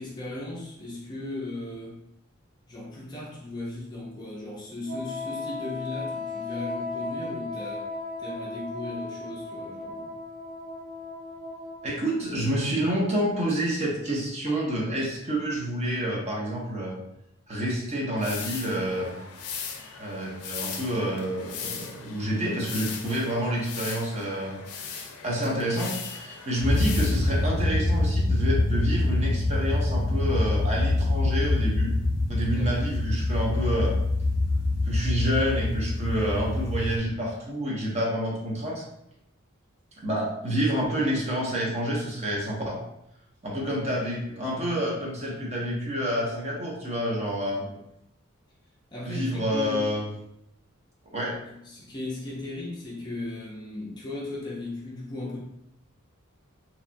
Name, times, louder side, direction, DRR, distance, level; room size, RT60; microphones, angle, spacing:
voice 1, 0.0-2.0 2.7-7.9 8.2-10.2 32.5-32.7 47.5-47.8 48.9-50.0 51.2-55.4, left 2 dB, 20° left, -4 dB, 0.4 m, -37 dB
Wind instrument woodwind instrument, 4.9-12.2, left 3 dB, 70° right, 0.7 m, -36 dB
voice 2, 11.8-17.0 17.5-19.2 20.0-24.6 25.2-31.9 32.3-34.0 34.8-38.8 40.0-42.8 43.4-47.6 49.0-50.1 51.1-51.3, equal, 30° right, -3 dB, 0.6 m, -28 dB
sound 1, 18.2-27.5, left 6 dB, 85° left, 0.4 m, -39 dB
sound 2, 26.6-37.0, left 2 dB, 45° left, 0.9 m, -25 dB
2.8 x 2.2 x 2.5 m, 0.79 s
head